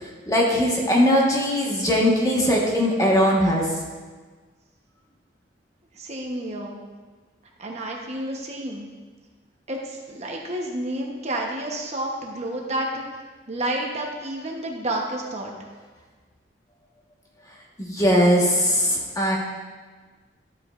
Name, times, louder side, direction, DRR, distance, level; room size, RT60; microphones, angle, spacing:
voice 1, 0.3-3.7 17.8-19.4, equal, 20° left, -3 dB, 1.3 m, -20 dB
voice 2, 5.9-6.8 7.6-8.9 9.7-13.0 13.5-15.5, right 1 dB, 40° right, 0 dB, 0.9 m, -30 dB
11.5 x 8.2 x 2.5 m, 1.4 s
head